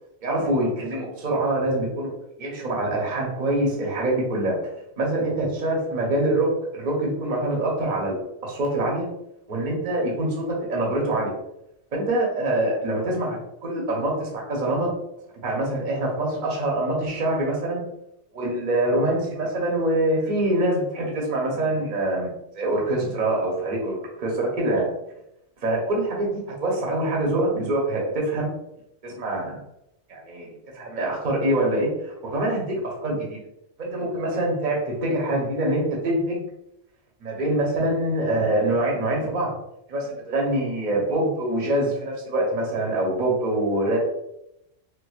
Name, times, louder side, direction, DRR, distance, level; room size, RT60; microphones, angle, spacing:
voice 1, 0.2-2.1 2.4-4.6 5.0-9.1 9.5-11.3 11.9-14.9 15.4-17.8 18.3-24.9 25.6-28.5 29.0-29.6 30.1-30.5 30.7-33.4 33.8-36.4 37.2-39.5 39.9-44.0, right 1 dB, 45° right, -2 dB, 0.9 m, -25 dB
4.5 x 2.1 x 2.3 m, 0.82 s
omnidirectional pair, 1.3 m